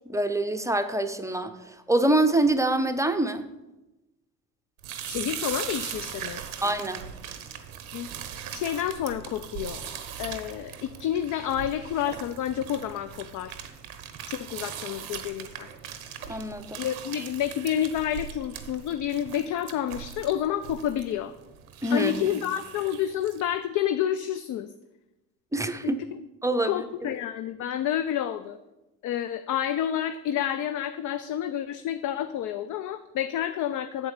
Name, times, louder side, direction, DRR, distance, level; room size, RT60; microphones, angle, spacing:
voice 1, 0.1-3.5 6.6-7.0 16.3-16.8 21.8-22.3 25.5-26.0 26.4-27.1, right 1 dB, 5° right, 9 dB, 0.6 m, -25 dB
sound 1, 4.8-23.5, right 8 dB, 85° right, 0.8 m, -40 dB
voice 2, 5.1-6.4 7.9-8.1 8.5-9.8 10.2-13.6 14.3-15.7 16.8-21.3 21.9-24.7 25.8-26.0 26.6-28.6 29.0-34.1, left 10 dB, 50° left, 11 dB, 0.4 m, -29 dB
7.2 x 4.4 x 6.5 m, 1.0 s
hypercardioid pair, 55°, 42 cm